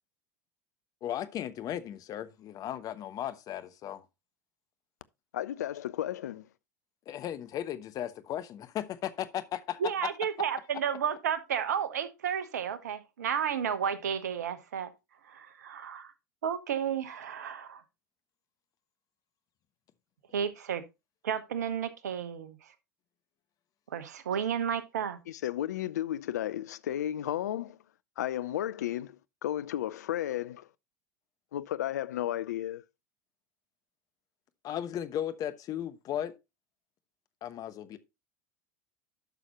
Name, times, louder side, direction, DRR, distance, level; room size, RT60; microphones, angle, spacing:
voice 1, 1.0-4.0 7.1-10.1 34.6-36.3 37.4-38.0, left 11 dB, 40° left, 1.0 m, -36 dB
voice 2, 5.3-6.5 25.3-27.8 28.2-29.2 29.4-30.7 31.5-32.8, left 12 dB, 75° left, 0.5 m, -33 dB
voice 3, 9.8-14.9 15.3-16.1 16.4-17.8 20.3-20.8 21.2-22.6 23.9-25.2, right 8 dB, 75° right, 1.0 m, -32 dB
11.5 x 6.3 x 2.9 m
figure-of-eight pair, 80°, 9 cm